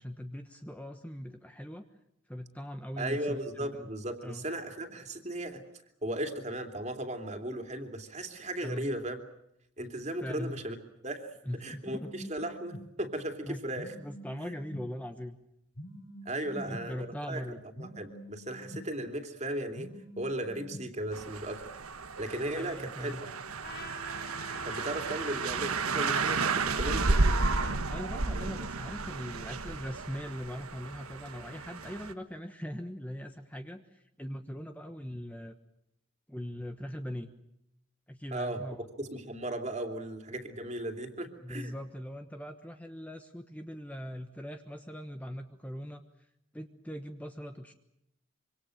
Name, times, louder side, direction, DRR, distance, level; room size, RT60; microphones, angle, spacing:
voice 1, 0.0-1.9 2.3-3.9 4.2-4.4 8.6-8.9 10.2-10.6 11.4-12.5 13.4-13.6 13.9-15.4 16.5-17.6 22.5-23.2 27.9-35.5 36.3-37.3 38.1-38.8 41.4-46.0 46.5-47.7, equal, 5° left, 6 dB, 1.1 m, -40 dB
voice 2, 3.0-5.6 6.0-9.2 9.8-10.8 11.0-11.3 11.6-13.9 16.2-19.9 20.2-21.6 22.2-23.3 24.6-27.2 38.3-41.7, right 1 dB, 30° right, 6 dB, 2.9 m, -36 dB
Telephone, 12.0-12.8 13.7-14.8 15.7-16.8 17.7-18.8 19.7-20.8, equal, 65° left, 7.6 m, -46 dB
sound 1, 21.1-32.1, right 3 dB, 85° right, 1.5 m, -32 dB
Trumpet, 23.6-27.8, left 1 dB, 45° left, 2.2 m, -46 dB
26.0 x 25.5 x 6.5 m, 0.82 s
head